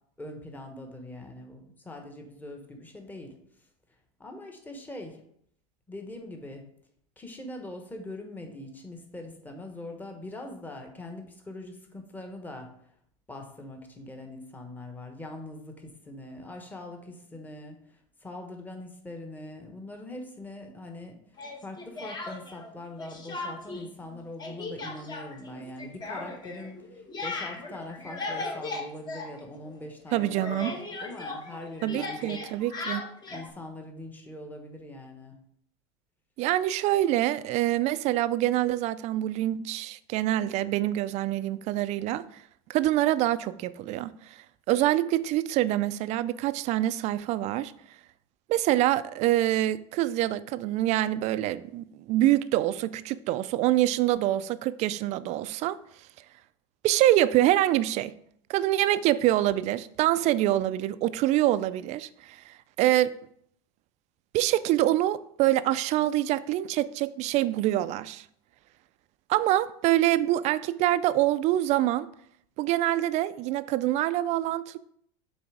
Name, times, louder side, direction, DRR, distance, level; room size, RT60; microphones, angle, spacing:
voice 1, 0.2-3.3 4.2-5.2 5.9-6.6 7.2-12.7 13.3-21.2 21.6-32.4 33.3-35.4, left 1 dB, 10° left, 1.2 m, -42 dB
Speech, 21.4-22.7 23.0-23.9 24.1-29.8 30.1-33.5, left 3 dB, 25° left, 1.3 m, -37 dB
voice 2, 30.1-30.7 31.8-33.0 36.4-42.4 42.7-44.4 44.7-47.7 48.5-55.8 56.8-58.1 58.5-63.1 64.3-68.2 69.3-72.1 72.6-74.8, right 14 dB, 45° right, 0.4 m, -25 dB
7.2 x 3.4 x 4.8 m
supercardioid pair, 110°, 16 cm